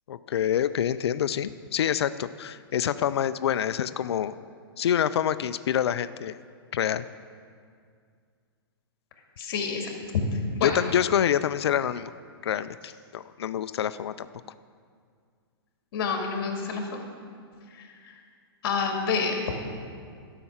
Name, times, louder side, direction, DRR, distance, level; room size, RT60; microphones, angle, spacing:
voice 1, 0.1-4.3 4.8-6.4 6.7-7.1 10.6-12.1 12.4-14.3, left 9 dB, 85° left, 14 dB, 0.4 m, -26 dB
voice 2, 9.4-9.9 10.3-10.8 15.9-17.0 17.7-18.2 18.6-19.4, left 5 dB, 60° left, 2 dB, 2.1 m, -29 dB
12.0 x 5.8 x 7.2 m, 2.1 s
hypercardioid pair, 140°, 13 cm